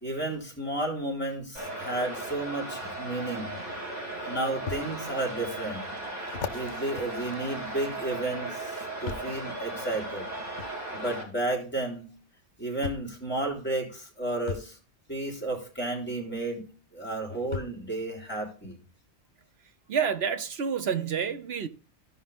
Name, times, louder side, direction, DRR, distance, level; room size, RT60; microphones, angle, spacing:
voice 1, 0.0-3.5 4.3-5.9 6.5-10.3 10.9-12.1 12.6-14.8 15.1-16.6 16.9-18.8, right 2 dB, 10° left, 3.4 m, -32 dB
sound 1, 1.5-11.2, right 2 dB, 35° right, 3.5 m, -37 dB
sound 2, 4.7-4.9 5.5-5.6 6.3-8.2 9.1-9.4 10.6-10.7 12.0-12.1 12.8-13.2 14.5-14.7 16.3-16.4 17.5-17.9 18.6-18.7, left 7 dB, 80° left, 1.2 m, -38 dB
voice 2, 19.9-21.7, right 7 dB, 60° right, 1.1 m, -28 dB
15.5 x 5.6 x 3.5 m
omnidirectional pair, 1.2 m